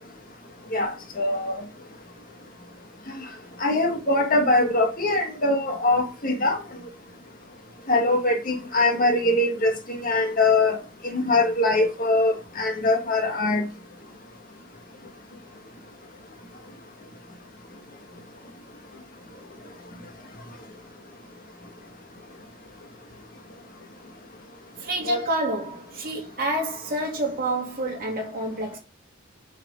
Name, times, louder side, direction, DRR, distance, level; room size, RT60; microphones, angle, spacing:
voice 1, 0.7-1.6 3.6-6.6 7.9-10.8 11.1-13.7 25.0-25.2, left 2 dB, 40° left, 1.7 m, -22 dB
voice 2, 24.8-28.8, right 2 dB, 45° right, 2.9 m, -28 dB
7.0 x 6.5 x 3.8 m
head